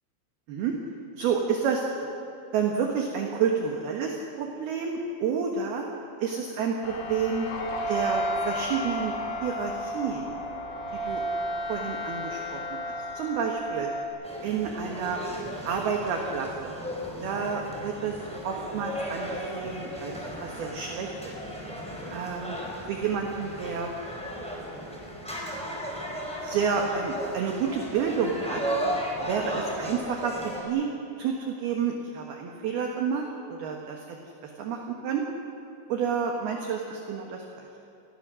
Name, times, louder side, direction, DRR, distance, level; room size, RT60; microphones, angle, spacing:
voice 1, 1.1-2.1 2.5-5.8 6.2-7.5 7.9-9.1 9.4-10.3 10.9-11.2 11.7-13.9 14.4-15.2 15.6-16.7 17.2-18.2 18.4-20.1 20.4-21.4 22.1-22.6 22.9-23.9 26.4-28.6 29.2-30.9 31.2-34.2 34.6-35.2 35.9-37.7, right 6 dB, 65° right, 1 dB, 2.9 m, -29 dB
sound 1, 6.8-14.0, equal, 70° left, 4.7 m, -32 dB
sound 2, 14.2-30.6, equal, ahead, 3.6 m, -35 dB
29.0 x 21.0 x 6.3 m, 2.7 s
omnidirectional pair, 5.8 m